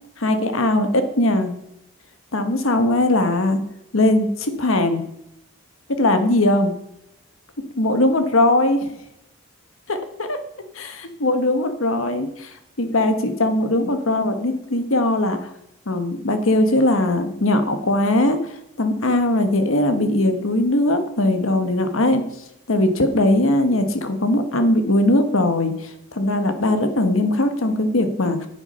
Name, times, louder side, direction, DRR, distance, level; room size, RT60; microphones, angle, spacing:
voice 1, 0.2-1.5 2.3-3.6 3.9-5.0 5.9-6.7 7.8-8.9 9.9-10.4 10.7-15.5 15.9-18.5 18.8-22.2 22.7-28.5, left 1 dB, 70° left, 8 dB, 1.3 m, -20 dB
9.8 x 8.1 x 5.4 m, 0.80 s
head